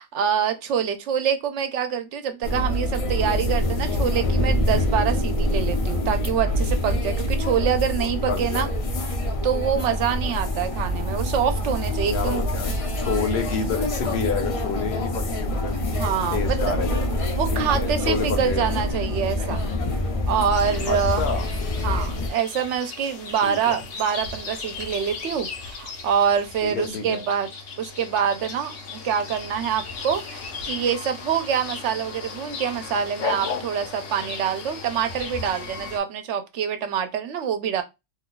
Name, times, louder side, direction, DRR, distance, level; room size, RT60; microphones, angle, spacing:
voice 1, 0.0-8.7 9.4-12.4 16.0-16.7 17.4-19.7 20.3-21.3 21.8-27.5 27.8-37.8, right 8 dB, 75° right, 0.9 m, -25 dB
sound 1, 2.4-22.3, left 1 dB, 45° left, 0.5 m, -25 dB
voice 2, 8.3-8.7 12.1-15.7 16.3-17.1 17.5-18.6 20.9-21.5 23.4-23.8 26.6-27.2, left 5 dB, 60° left, 1.0 m, -29 dB
sound 2, 20.5-36.0, left 4 dB, 80° left, 1.1 m, -36 dB
2.8 x 2.3 x 3.8 m
omnidirectional pair, 1.3 m